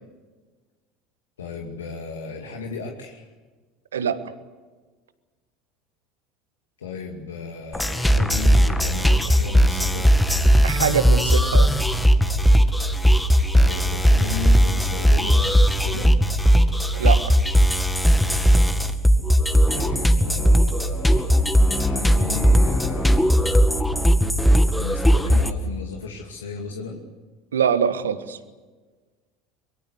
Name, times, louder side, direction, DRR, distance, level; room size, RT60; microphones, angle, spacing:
voice 1, 1.4-3.3 6.8-10.2 13.5-16.1 19.7-23.8 24.6-27.0, left 4 dB, 80° left, 1 dB, 2.4 m, -35 dB
sound 1, 7.7-25.5, equal, 5° left, 2.0 m, -18 dB
voice 2, 10.6-11.7 16.9-17.4 27.5-28.4, right 7 dB, 80° right, 12 dB, 1.5 m, -23 dB
24.5 x 22.5 x 8.2 m, 1.3 s
figure-of-eight pair, 70°, 0 cm